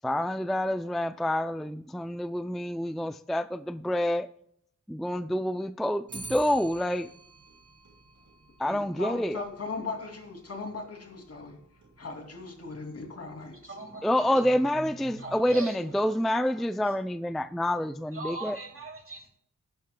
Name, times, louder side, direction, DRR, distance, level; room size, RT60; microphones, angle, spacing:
voice 1, 0.0-4.3 4.9-7.1 8.6-9.5 14.0-18.6, left 1 dB, ahead, 12 dB, 0.3 m, -28 dB
Clock, 6.1-15.5, right 3 dB, 75° right, 2.6 m, -51 dB
voice 2, 8.6-11.6 12.0-13.7, left 3 dB, 55° left, 3 dB, 2.6 m, -38 dB
voice 3, 13.4-14.4 15.1-15.8 16.4-16.6 18.1-19.3, right 3 dB, 45° right, 2 dB, 2.7 m, -41 dB
15.0 x 11.5 x 2.2 m, 0.70 s
wide cardioid pair, 145°, 29 cm